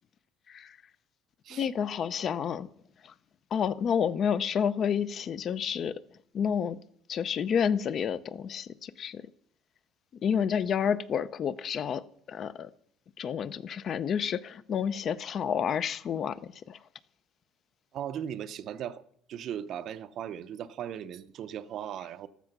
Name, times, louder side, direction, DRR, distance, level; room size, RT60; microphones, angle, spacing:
voice 1, 1.5-2.7 3.0-3.1 3.5-6.0 6.3-6.8 7.1-9.2 10.2-12.0 12.3-12.7 13.2-16.8, left 7 dB, 35° left, 0.5 m, -30 dB
voice 2, 17.9-22.3, right 9 dB, 45° right, 0.6 m, -38 dB
14.0 x 13.0 x 6.0 m
cardioid pair, 170°, 0 cm